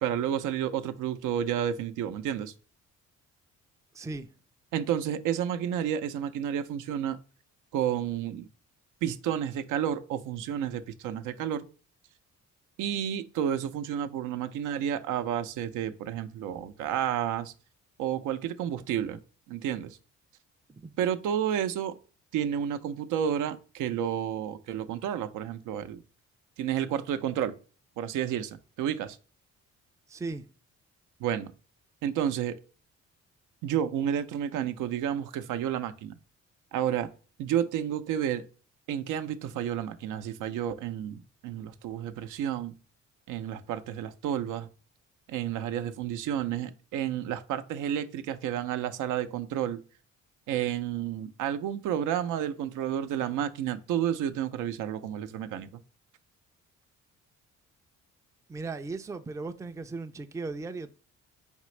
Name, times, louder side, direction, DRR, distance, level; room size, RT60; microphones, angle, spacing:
voice 1, 0.0-2.5 4.7-7.2 7.7-8.5 9.0-11.6 12.8-17.5 18.0-19.2 19.5-20.0 21.0-22.0 22.3-26.0 26.6-27.5 28.0-29.2 31.2-31.5 32.0-32.5 33.6-36.2 36.7-37.1 37.4-38.5 38.9-42.7 43.3-44.7 45.3-49.8 50.5-55.8, right 9 dB, 85° right, 0.5 m, -31 dB
voice 2, 3.9-4.3 20.7-20.9 30.1-30.4 58.5-60.9, right 3 dB, 10° right, 0.4 m, -37 dB
4.1 x 3.6 x 3.1 m
cardioid pair, 90°, 30 cm